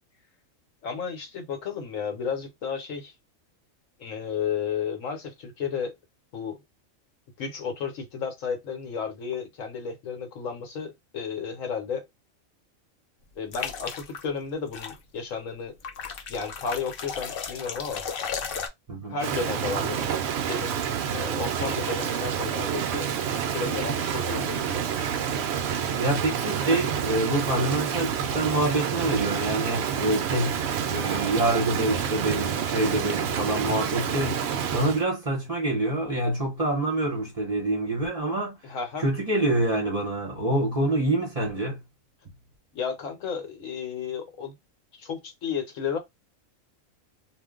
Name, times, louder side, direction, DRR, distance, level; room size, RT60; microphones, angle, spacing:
voice 1, 0.8-3.1 4.0-5.9 6.3-6.6 7.4-12.0 13.4-15.8 16.3-18.0 19.1-20.8 21.1-23.1 23.4-24.9 38.6-39.0 42.7-44.5 44.9-46.0, left 6 dB, 75° left, 1.2 m, -33 dB
sound 1, 13.5-14.2 14.7-15.0 15.8-18.7, left 6 dB, 60° left, 0.6 m, -34 dB
Rain, 19.2-35.0, right 8 dB, 65° right, 0.7 m, -28 dB
voice 2, 26.0-38.6 39.0-41.8, right 2 dB, 35° right, 0.8 m, -26 dB
2.5 x 2.2 x 3.6 m
omnidirectional pair, 1.4 m